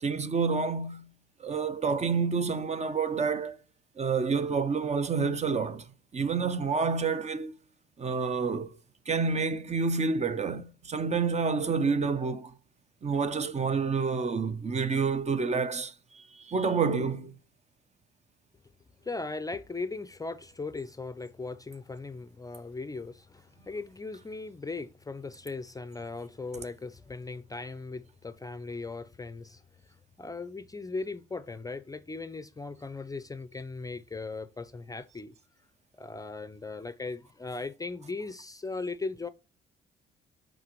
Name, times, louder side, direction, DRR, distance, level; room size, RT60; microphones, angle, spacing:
voice 1, 0.0-1.1 1.4-3.6 4.0-5.9 6.1-7.5 8.0-8.7 9.1-12.5 13.0-17.3, right 5 dB, 35° right, 0.6 m, -28 dB
voice 2, 19.0-29.6 30.2-35.3 35.9-39.3, left 3 dB, 20° left, 0.5 m, -38 dB
9.8 x 3.8 x 3.0 m
cardioid pair, 90°, 20 cm